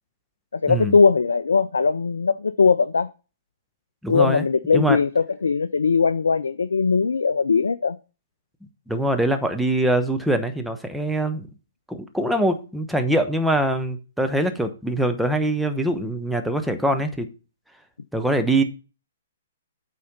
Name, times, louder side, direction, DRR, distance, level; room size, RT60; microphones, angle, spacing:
voice 1, 0.5-3.1 4.1-8.0, left 5 dB, 80° left, 0.3 m, -20 dB
voice 2, 4.0-4.4 4.7-5.0 8.9-11.5 11.9-17.3 18.1-18.6, right 1 dB, ahead, 1.0 m, -23 dB
8.4 x 4.4 x 5.2 m
hypercardioid pair, 125°, 0 cm